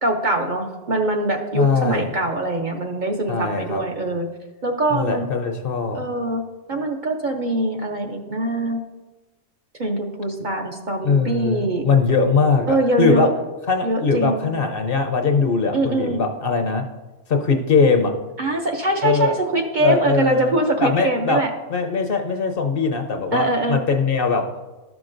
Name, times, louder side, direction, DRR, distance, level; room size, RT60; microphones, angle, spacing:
voice 1, 0.0-4.3 4.6-5.2 5.9-6.4 6.7-8.8 9.8-11.8 12.7-13.3 13.8-14.4 15.7-16.2 18.4-21.5 23.3-23.8, right 2 dB, 50° right, 2 dB, 0.7 m, -23 dB
voice 2, 1.5-2.2 3.3-3.8 4.9-6.0 11.0-13.3 13.7-16.9 17.3-18.2 19.0-19.4 19.8-20.5 20.8-24.5, left 4 dB, 55° left, 5 dB, 0.7 m, -21 dB
12.5 x 6.0 x 2.5 m, 1.1 s
omnidirectional pair, 1.2 m